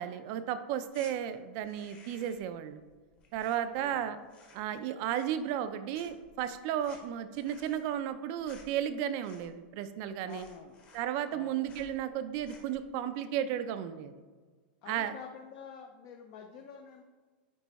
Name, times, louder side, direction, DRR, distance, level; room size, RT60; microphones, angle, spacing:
voice 1, 0.0-2.8 3.3-4.2 4.5-10.5 10.9-14.1 14.9-15.1, right 10 dB, 40° right, 11 dB, 0.4 m, -34 dB
sound 1, 0.9-1.1 1.6-2.5 2.8-4.0 4.2-4.7 5.0-5.7 5.9-9.7 10.0-10.1 10.3-11.4 11.7-11.9 12.3-12.8, left 3 dB, 20° left, 0.9 m, -57 dB
voice 2, 3.7-4.1 10.2-10.8 11.3-11.6 14.8-17.0, left 7 dB, 35° left, 4 dB, 0.5 m, -48 dB
9.2 x 3.3 x 4.1 m, 1.4 s
supercardioid pair, 170°, 6 cm